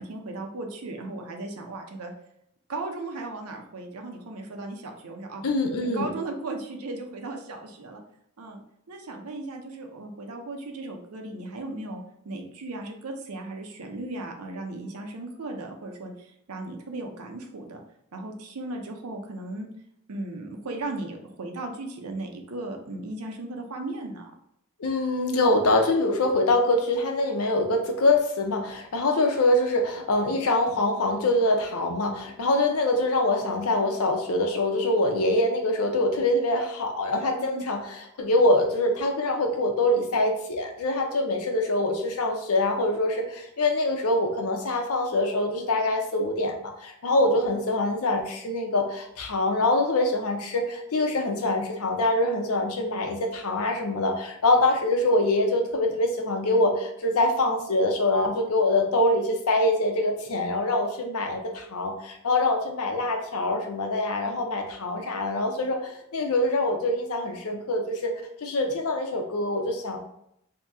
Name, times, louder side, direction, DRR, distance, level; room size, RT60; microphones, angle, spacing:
voice 1, 0.0-2.1 2.7-5.4 5.8-8.0 8.4-8.6 8.9-17.8 18.1-19.7 20.1-24.3 37.4-37.7, right 2 dB, 90° right, 3 dB, 0.7 m, -36 dB
voice 2, 5.4-6.1 24.8-68.1 68.4-70.0, left 2 dB, 85° left, 3 dB, 0.7 m, -24 dB
2.9 x 2.7 x 3.5 m, 0.75 s
head